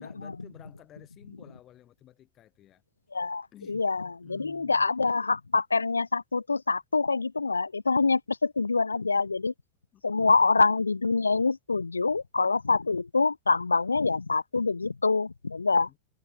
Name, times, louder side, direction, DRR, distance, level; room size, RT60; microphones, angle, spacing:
voice 1, 0.0-2.8 3.5-4.9 9.9-10.3 15.9-16.0, left 12 dB, 30° left, 3.2 m, -53 dB
voice 2, 3.1-9.5 10.0-15.9, left 4 dB, 80° left, 0.5 m, -25 dB
figure-of-eight pair, 90°, 0 cm